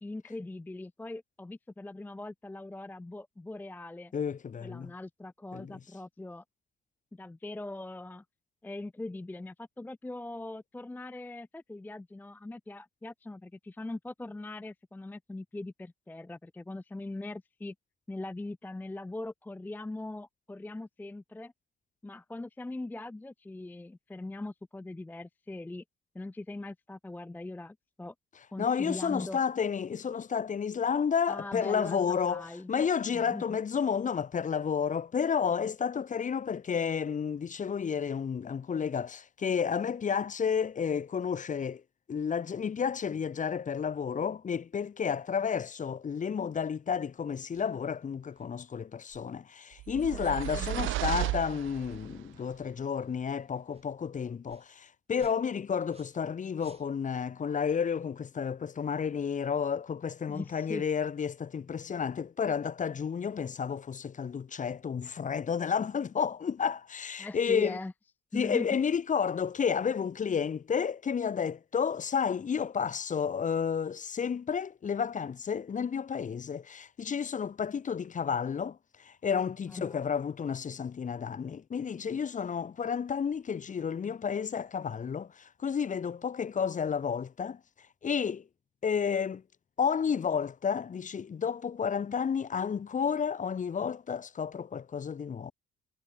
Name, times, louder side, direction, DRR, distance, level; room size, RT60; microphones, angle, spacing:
voice 1, 0.0-4.1 4.6-6.4 7.1-8.2 8.6-17.7 18.1-21.5 22.0-25.8 26.1-28.1 28.5-29.4 31.3-32.7 33.1-33.4 50.1-50.7 60.3-60.8 67.2-67.9 68.3-68.7 79.7-80.0, left 2 dB, 10° left, 0.4 m, -41 dB
voice 2, 4.1-4.9 5.5-5.8 28.6-41.8 42.1-67.8 68.3-87.6 88.0-88.5 88.8-89.4 89.8-95.5, left 7 dB, 40° left, 1.1 m, -31 dB
sound 1, 47.5-47.8 48.3-48.6 49.1-49.3 49.9-50.1 50.6-50.9 51.5-51.7 52.3-52.5 52.9-53.1 53.7-53.9 54.4-54.7 55.1-56.3 56.6-57.3, right 4 dB, 30° right, 2.9 m, -60 dB
sound 2, 49.8-52.2, right 17 dB, 80° right, 0.5 m, -34 dB
cardioid pair, 90°, 20 cm